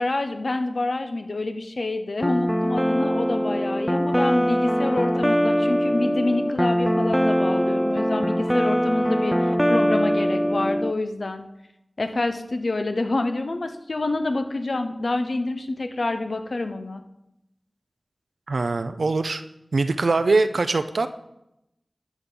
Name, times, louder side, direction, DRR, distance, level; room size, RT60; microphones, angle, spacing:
voice 1, 0.0-11.5 12.0-17.0, left 2 dB, 75° left, 8 dB, 0.7 m, -27 dB
sound 1, 2.2-10.9, equal, ahead, 0.3 m, -22 dB
voice 2, 18.5-19.4 19.7-21.1, right 3 dB, 90° right, 10 dB, 0.5 m, -22 dB
11.5 x 7.2 x 3.9 m, 0.86 s
wide cardioid pair, 45°, 0 cm